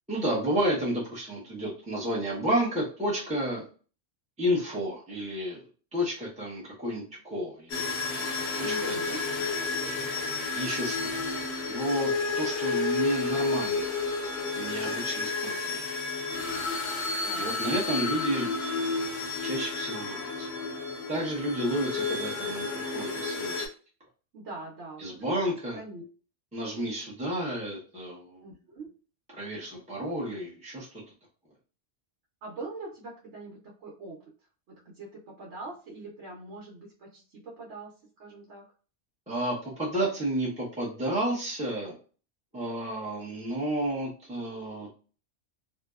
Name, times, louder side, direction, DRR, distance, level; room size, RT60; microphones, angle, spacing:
voice 1, 0.1-3.7 4.4-5.6 5.9-8.2 8.5-9.2 10.5-14.0 14.4-15.8 17.3-18.5 19.4-20.5 21.1-23.6 25.0-25.8 26.5-28.4 29.3-30.9 39.3-41.9 42.5-44.9, right 1 dB, 10° right, -7 dB, 0.5 m, -31 dB
sound 1, 7.7-23.7, left 3 dB, 70° left, 0.9 m, -31 dB
voice 2, 8.6-9.2 17.2-17.5 24.3-26.0 28.4-29.0 32.4-34.2 34.7-38.7, right 3 dB, 75° right, -3 dB, 1.0 m, -43 dB
2.7 x 2.1 x 2.3 m, 0.39 s
omnidirectional pair, 1.2 m